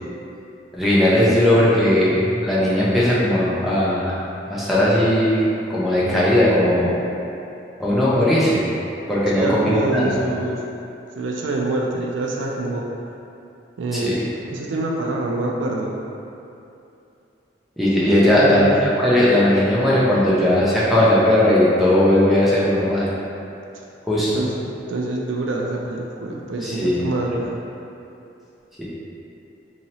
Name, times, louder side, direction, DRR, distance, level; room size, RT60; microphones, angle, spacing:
voice 1, 0.7-4.2 4.5-5.4 5.7-6.9 7.8-8.6 9.1-10.2 13.9-14.1 17.8-18.6 19.0-23.1 24.1-24.3 26.6-27.1 28.8-28.9, left 1 dB, ahead, -9 dB, 0.6 m, -18 dB
voice 2, 9.3-10.6 11.2-12.9 13.8-15.9 18.2-18.7 24.3-24.5 24.9-27.6, right 2 dB, 90° right, -1 dB, 0.4 m, -25 dB
2.9 x 2.8 x 4.0 m, 2.7 s
head